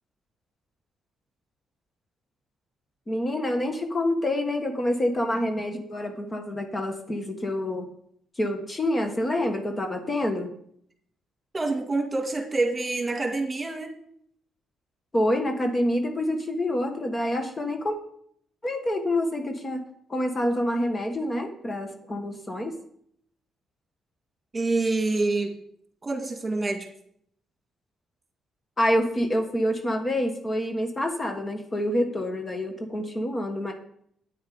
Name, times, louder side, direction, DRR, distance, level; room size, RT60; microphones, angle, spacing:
voice 1, 3.1-7.9 8.4-10.5 15.1-18.0 18.6-19.8 20.1-22.8 28.8-33.7, left 1 dB, 25° left, 5 dB, 1.4 m, -27 dB
voice 2, 11.5-13.9 24.5-25.5 26.0-26.9, right 3 dB, 25° right, 3 dB, 2.2 m, -26 dB
9.0 x 8.8 x 5.0 m, 0.67 s
cardioid pair, 90°, 0 cm